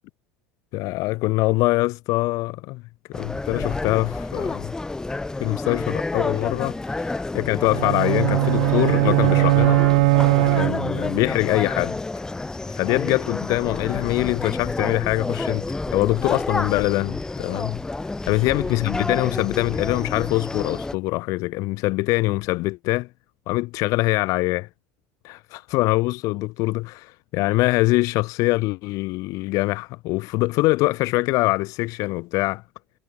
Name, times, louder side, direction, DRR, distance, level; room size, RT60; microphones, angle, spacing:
voice 1, 0.7-2.8 3.1-4.7 5.4-9.8 10.6-12.0 12.7-17.8 18.3-23.1 23.5-24.7 25.2-32.6, left 21 dB, 60° left, 1.4 m, -23 dB
sound 1, 3.1-20.9, left 2 dB, 10° left, 0.8 m, -29 dB
sound 2, 7.7-11.2, right 28 dB, 75° right, 0.4 m, -19 dB
supercardioid pair, 105°, 6 cm